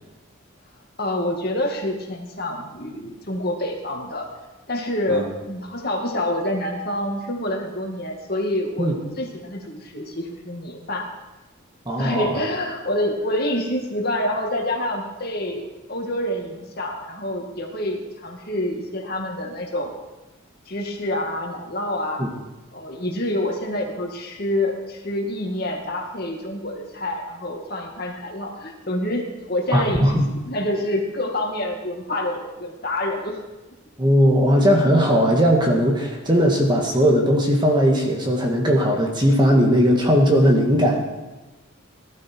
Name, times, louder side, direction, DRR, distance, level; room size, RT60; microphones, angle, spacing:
voice 1, 1.0-4.3 4.7-11.1 12.0-19.9 20.7-22.3 22.7-30.1 30.5-33.4, left 1 dB, 45° left, 1 dB, 2.3 m, -27 dB
voice 2, 11.9-12.4 22.2-22.3 29.7-30.3 34.0-41.1, equal, 20° right, 1 dB, 1.9 m, -18 dB
19.0 x 12.0 x 4.7 m, 1.1 s
head